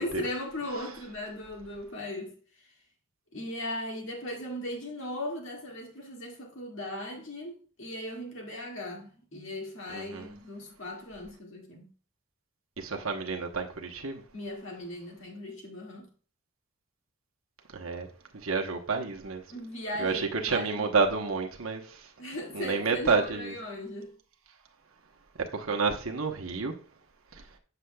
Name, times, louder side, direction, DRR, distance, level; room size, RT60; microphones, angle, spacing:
voice 1, 0.0-2.3 3.3-11.9 14.3-16.1 19.5-20.9 22.2-24.2, left 1 dB, 55° left, 2.0 m, -38 dB
voice 2, 9.9-10.3 12.8-14.2 17.7-18.1 18.4-19.4 20.0-22.0 22.5-23.5 25.5-26.7, right 4 dB, 65° right, 1.0 m, -29 dB
8.1 x 6.7 x 2.3 m
head